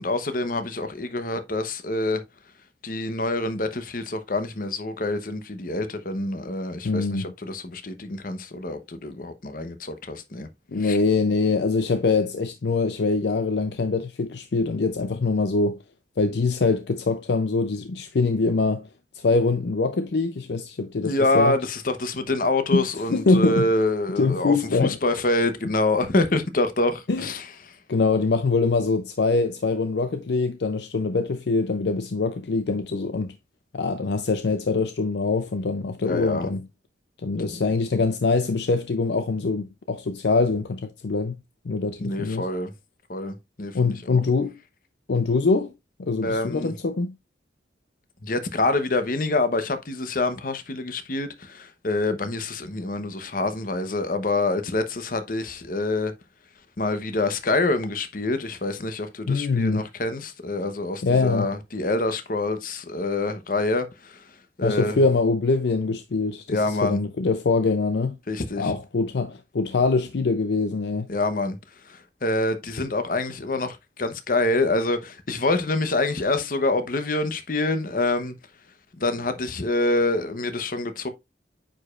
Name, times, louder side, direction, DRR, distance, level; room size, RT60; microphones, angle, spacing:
voice 1, 0.0-2.2 2.8-10.5 10.8-11.0 21.0-27.4 36.0-36.5 37.4-37.6 42.0-42.7 43.1-44.2 46.2-46.7 48.2-56.1 56.8-64.2 64.6-64.9 66.5-67.0 68.3-68.7 71.1-71.6 71.9-78.3 79.0-81.1, left 2 dB, 50° left, 0.9 m, -26 dB
voice 2, 6.8-7.3 10.7-15.8 16.2-18.9 19.1-21.5 22.7-23.7 24.2-25.0 27.1-27.3 27.9-33.4 33.7-36.6 37.2-41.4 41.7-42.5 43.7-44.5 45.1-45.7 46.0-47.1 59.3-59.9 61.0-61.5 64.6-68.2 68.6-71.1, left 3 dB, 70° left, 0.5 m, -23 dB
9.0 x 5.0 x 2.4 m
head